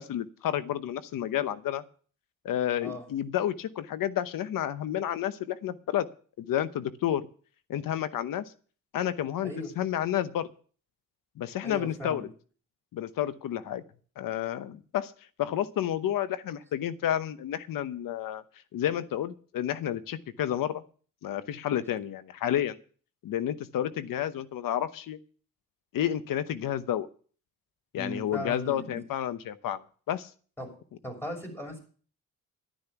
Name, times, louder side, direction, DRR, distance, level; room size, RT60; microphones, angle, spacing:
voice 1, 0.0-1.8 2.4-6.1 6.4-7.3 7.7-8.4 8.9-10.5 11.4-12.3 12.9-13.8 14.2-15.1 15.4-18.4 18.7-20.8 21.2-22.8 23.2-25.2 25.9-27.1 27.9-30.3, left 11 dB, 85° left, 13 dB, 0.9 m, -30 dB
voice 2, 11.6-12.3 27.9-29.0 30.6-30.7 31.0-31.8, equal, 5° left, 1 dB, 6.5 m, -37 dB
12.0 x 10.5 x 5.9 m, 0.42 s
cardioid pair, 95°, 32 cm